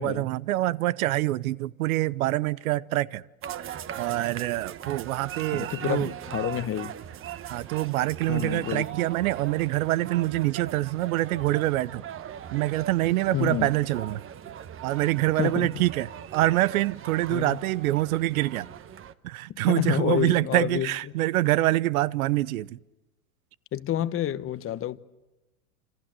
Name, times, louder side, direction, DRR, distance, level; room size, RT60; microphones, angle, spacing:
voice 1, 0.0-3.2 4.0-6.1 7.5-12.0 12.5-14.2 14.8-18.7 19.2-22.8, right 17 dB, 70° right, 0.9 m, -25 dB
sound 1, 3.4-19.1, right 10 dB, 30° right, 1.2 m, -40 dB
voice 2, 5.5-6.9 8.3-8.9 13.3-13.7 15.4-15.7 17.3-17.6 19.7-20.9 23.7-25.0, left 12 dB, 30° left, 1.1 m, -29 dB
27.5 x 27.5 x 7.6 m
hypercardioid pair, 115°, 44 cm